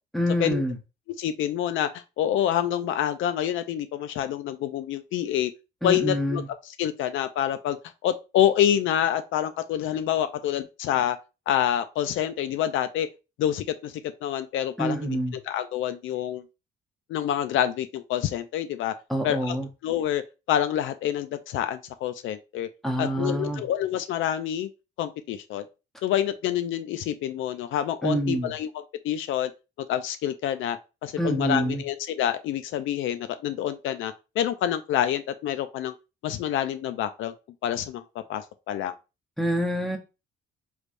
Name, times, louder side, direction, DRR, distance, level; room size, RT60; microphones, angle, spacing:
voice 1, 0.1-0.8 5.8-6.4 14.8-15.4 19.1-19.7 22.8-23.6 28.0-28.5 31.2-31.8 39.4-40.0, equal, ahead, 0.9 m, -26 dB
voice 2, 1.2-5.5 5.8-7.8 8.0-11.2 11.5-13.1 13.4-13.9 14.2-15.2 15.4-16.4 17.1-18.9 19.2-19.6 19.8-20.2 20.5-22.7 23.0-24.7 25.0-25.7 26.0-28.7 29.0-29.5 29.9-30.8 31.0-35.9 36.2-37.3 37.6-38.0 38.3-38.9, left 10 dB, 80° left, 0.4 m, -27 dB
3.3 x 3.1 x 2.5 m
cardioid pair, 90°, 20 cm